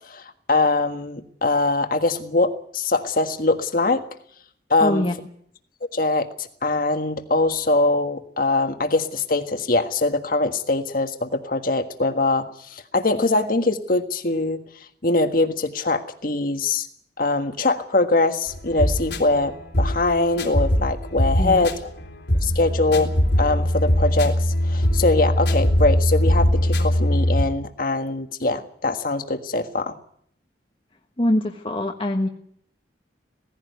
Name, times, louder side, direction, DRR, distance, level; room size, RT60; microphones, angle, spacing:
voice 1, 0.1-4.1 4.7-5.0 5.9-14.6 15.0-16.9 17.2-21.8 22.4-29.9, left 2 dB, 50° left, 7 dB, 1.6 m, -22 dB
voice 2, 4.8-5.3 21.4-21.6 31.2-32.3, left 1 dB, 30° left, 2 dB, 1.3 m, -23 dB
sound 1, 18.5-27.4, equal, 75° left, 3.5 m, -21 dB
17.5 x 16.0 x 9.4 m, 0.67 s
head